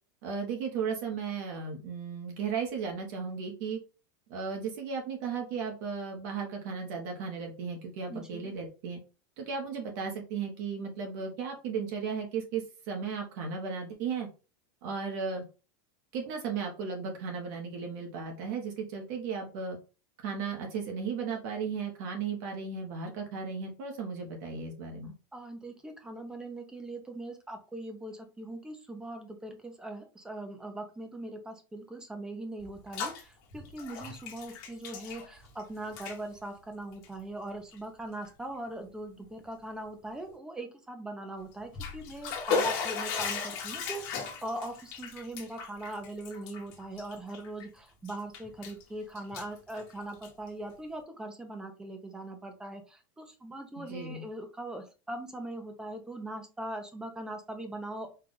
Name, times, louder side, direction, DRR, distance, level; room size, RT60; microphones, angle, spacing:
voice 1, 0.2-3.8 4.3-9.0 9.4-14.3 14.8-15.4 16.1-19.8 20.2-25.1 53.8-54.2, right 5 dB, 55° right, 2 dB, 1.2 m, -35 dB
voice 2, 8.1-8.6 25.3-58.1, right 1 dB, 5° right, 5 dB, 0.6 m, -41 dB
Bathtub (filling or washing), 32.6-33.2 33.5-35.6 35.9-36.2 36.9-37.1 37.7-37.8 38.3-38.4 41.5-47.7 48.1-48.8 49.2-50.5, left 5 dB, 50° left, 1.2 m, -36 dB
4.5 x 2.4 x 3.8 m, 0.32 s
supercardioid pair, 170°, 12 cm